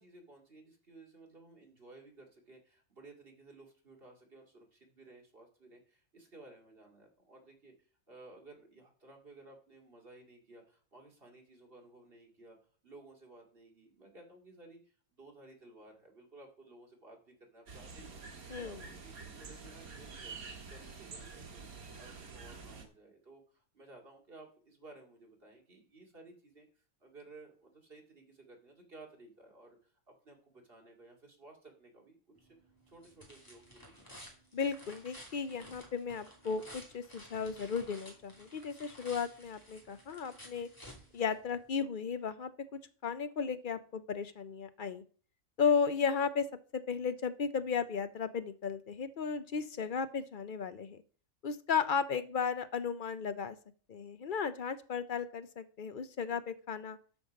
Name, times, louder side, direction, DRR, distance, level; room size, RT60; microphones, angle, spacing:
voice 1, 0.0-12.6 12.8-21.6 22.0-29.9 30.2-32.6 32.9-34.2, right 2 dB, 40° right, 1 dB, 2.6 m, -56 dB
sound 1, 17.7-22.8, right 4 dB, 75° right, 2.0 m, -48 dB
sound 2, 32.4-41.8, equal, 15° left, 2.7 m, -54 dB
voice 2, 34.5-40.7 41.1-45.0 45.6-46.4 46.9-51.0 51.4-53.6 53.9-57.0, left 6 dB, 55° left, 12 dB, 0.6 m, -35 dB
13.0 x 5.4 x 5.2 m, 0.43 s
omnidirectional pair, 1.5 m